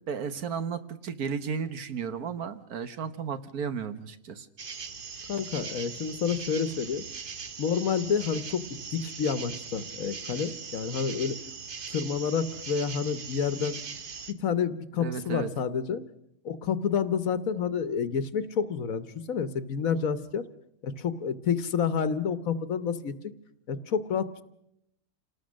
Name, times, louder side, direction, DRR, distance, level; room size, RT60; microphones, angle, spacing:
voice 1, 0.1-4.5 15.0-15.5, right 6 dB, 70° right, 10 dB, 1.6 m, -34 dB
sound 1, 4.6-14.3, right 5 dB, 40° right, 1.0 m, -40 dB
voice 2, 5.3-7.0 7.6-11.4 11.9-13.8 14.4-16.0 16.4-20.4 20.8-23.1 23.7-24.4, left 6 dB, 65° left, 13 dB, 1.4 m, -29 dB
28.0 x 18.5 x 6.4 m, 0.79 s
omnidirectional pair, 1.6 m